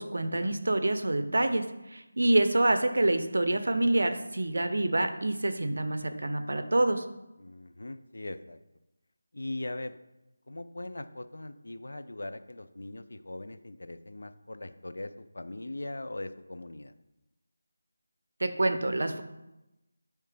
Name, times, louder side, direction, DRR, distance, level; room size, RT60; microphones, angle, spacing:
voice 1, 0.0-7.1 18.4-19.2, right 2 dB, 75° right, 9 dB, 0.5 m, -27 dB
voice 2, 7.4-8.6 9.3-10.0 10.5-16.9, left 2 dB, 75° left, 11 dB, 0.3 m, -40 dB
4.7 x 3.1 x 3.4 m, 0.96 s
figure-of-eight pair, 170°, 0 cm